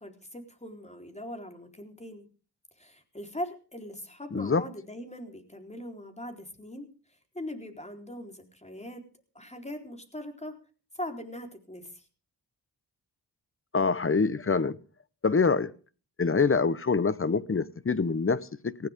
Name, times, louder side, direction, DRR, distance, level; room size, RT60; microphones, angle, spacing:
voice 1, 0.0-2.3 2.8-6.9 7.3-9.0 9.3-10.6 10.9-12.1, left 1 dB, 15° left, 4.0 m, -40 dB
voice 2, 4.3-4.6 13.7-14.8 15.2-15.7 16.2-18.9, left 4 dB, 30° left, 1.0 m, -25 dB
19.0 x 15.5 x 3.7 m
cardioid pair, 65°, 41 cm